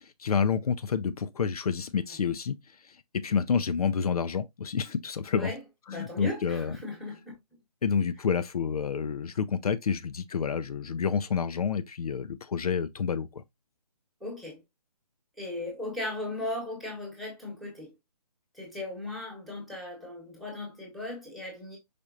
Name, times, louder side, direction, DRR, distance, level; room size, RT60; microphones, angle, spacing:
voice 1, 0.0-2.5 2.8-5.5 5.9-6.8 7.8-13.4, left 6 dB, 70° left, 0.5 m, -29 dB
voice 2, 5.9-7.3 14.2-14.6 15.4-17.9 18.5-21.8, left 1 dB, ahead, 1.1 m, -37 dB
5.1 x 4.2 x 2.4 m
hypercardioid pair, 155°, 20 cm